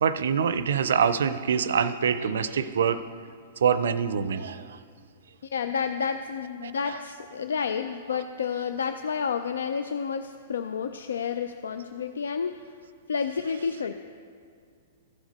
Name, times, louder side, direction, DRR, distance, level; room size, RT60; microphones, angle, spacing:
voice 1, 0.0-3.0 3.6-4.8 6.6-6.7, right 7 dB, 75° right, 14 dB, 0.4 m, -25 dB
voice 2, 5.5-12.6 13.1-13.9, left 6 dB, 80° left, 8 dB, 0.3 m, -30 dB
14.5 x 5.1 x 4.1 m, 2.2 s
hypercardioid pair, 125°, 0 cm